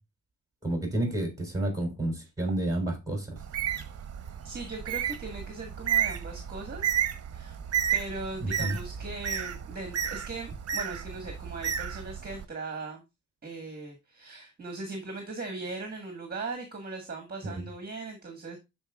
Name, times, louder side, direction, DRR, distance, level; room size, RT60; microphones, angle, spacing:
voice 1, 0.6-3.4 8.4-8.8 17.4-17.7, right 1 dB, 10° right, 3.6 m, -30 dB
Bird, 3.4-12.4, right 9 dB, 55° right, 0.9 m, -32 dB
voice 2, 4.4-6.9 7.3-7.6 7.9-13.0 13.4-18.6, right 3 dB, 30° right, 1.6 m, -39 dB
12.0 x 4.4 x 2.3 m
cardioid pair, 115°, 30 cm